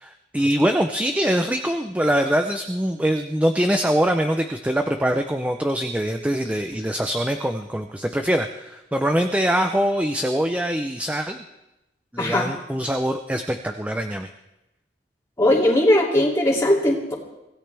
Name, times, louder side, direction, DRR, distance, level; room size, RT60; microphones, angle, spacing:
voice 1, 0.0-11.4 12.1-14.3, equal, 10° right, 6 dB, 0.6 m, -23 dB
voice 2, 15.4-17.1, left 1 dB, 15° left, -5 dB, 2.8 m, -19 dB
25.0 x 16.5 x 3.5 m, 0.94 s
head